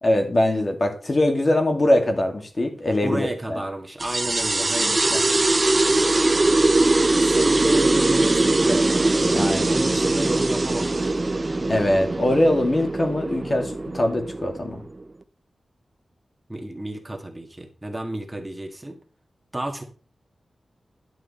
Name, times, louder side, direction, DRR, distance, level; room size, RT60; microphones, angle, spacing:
voice 1, 0.0-3.6 4.8-5.2 9.3-9.7 11.7-14.8, left 1 dB, 35° left, 4 dB, 2.4 m, -22 dB
voice 2, 3.0-5.0 7.2-11.2 16.5-19.0 19.5-19.8, right 1 dB, 10° right, 2 dB, 1.9 m, -31 dB
sound 1, 4.0-15.0, right 2 dB, 30° right, 0.6 m, -21 dB
11.5 x 7.6 x 4.4 m, 0.39 s
wide cardioid pair, 90°, 0 cm